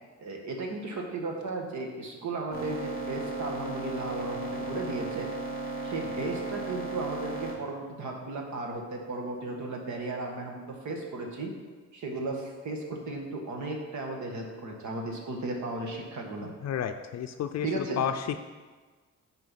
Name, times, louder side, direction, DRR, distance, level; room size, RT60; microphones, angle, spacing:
voice 1, 0.2-5.3 5.8-11.5 11.9-16.5 17.6-18.0, right 2 dB, 70° right, 1 dB, 1.6 m, -35 dB
sound 1, 2.5-7.5, right 2 dB, 30° right, 2.5 m, -35 dB
voice 2, 16.6-18.4, left 9 dB, 60° left, 7 dB, 0.5 m, -31 dB
9.6 x 4.5 x 5.7 m, 1.4 s
cardioid pair, 150°, 30 cm